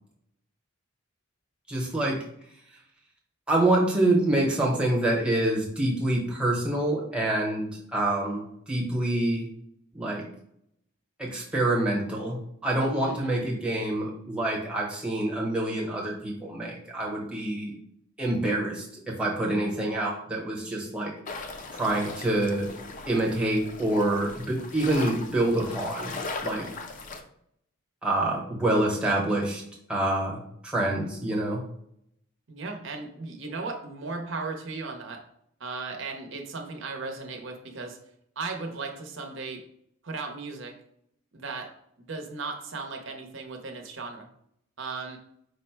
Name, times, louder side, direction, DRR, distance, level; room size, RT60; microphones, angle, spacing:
voice 1, 1.7-2.2 3.5-9.5 9.9-10.3 11.2-17.7 18.2-21.1 21.7-22.7 23.1-26.2 26.4-26.7 28.0-29.6 29.9-31.6, right 1 dB, 5° right, -2 dB, 0.9 m, -26 dB
voice 2, 13.0-13.4 32.5-35.2 35.6-38.0 38.4-39.6 40.0-40.7 41.3-41.7 42.0-44.3 44.8-45.2, right 3 dB, 60° right, 3 dB, 0.8 m, -36 dB
sound 1, 21.3-27.2, left 3 dB, 35° left, 0.4 m, -38 dB
4.9 x 2.1 x 4.5 m, 0.71 s
head